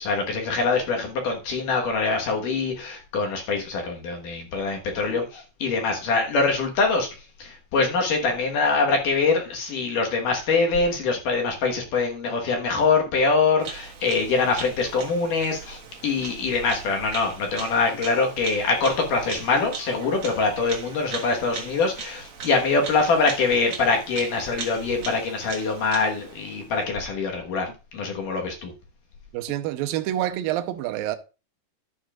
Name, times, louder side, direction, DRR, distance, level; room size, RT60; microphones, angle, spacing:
voice 1, 0.0-7.1 7.4-27.7 27.9-28.7, left 4 dB, 60° left, 2.6 m, -24 dB
Bird vocalization bird call bird song, 13.6-26.8, right 6 dB, 55° right, 2.1 m, -39 dB
voice 2, 29.3-31.2, right 13 dB, 75° right, 2.2 m, -27 dB
12.0 x 9.6 x 2.4 m
omnidirectional pair, 4.9 m